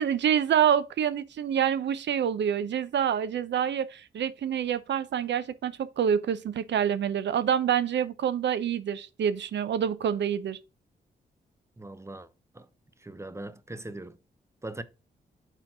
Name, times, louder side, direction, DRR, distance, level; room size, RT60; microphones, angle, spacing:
voice 1, 0.0-10.6, right 9 dB, 75° right, 0.6 m, -27 dB
voice 2, 11.8-12.3 12.5-12.7 13.0-14.2 14.6-14.8, right 2 dB, 15° right, 0.7 m, -40 dB
4.5 x 4.3 x 5.5 m
cardioid pair, 55°, 19 cm